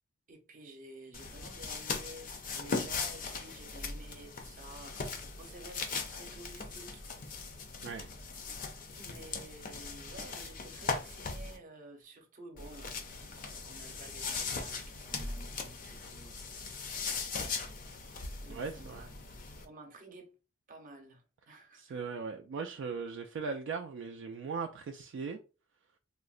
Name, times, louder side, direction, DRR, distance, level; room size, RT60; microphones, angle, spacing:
voice 1, 0.3-7.0 9.0-16.4 16.6-17.1 18.4-19.1 19.6-20.3 20.7-22.0, right 2 dB, 40° right, 0.7 m, -52 dB
sound 1, 1.1-11.6 12.6-19.6, left 4 dB, 40° left, 0.5 m, -39 dB
voice 2, 18.5-19.0 21.7-25.4, right 5 dB, 60° right, 0.3 m, -39 dB
3.6 x 2.0 x 2.4 m
head